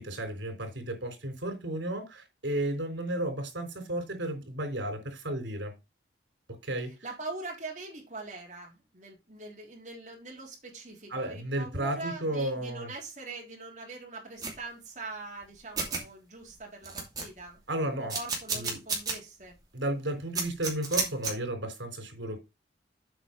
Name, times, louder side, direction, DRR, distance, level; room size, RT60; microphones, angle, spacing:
voice 1, 0.0-5.7 6.6-6.9 11.1-12.9 17.7-18.2 18.5-18.8 19.7-22.4, right 1 dB, 85° right, 6 dB, 3.7 m, -33 dB
voice 2, 7.0-17.6 18.0-19.5, right 3 dB, 40° right, -1 dB, 3.4 m, -42 dB
sound 1, 14.4-14.6 15.4-15.5 15.8-16.0 16.5-16.6 16.8-17.5 18.1-19.2 19.6-19.7 20.4-21.3, right 4 dB, 20° right, 2.7 m, -31 dB
7.9 x 5.2 x 5.1 m, 0.24 s
head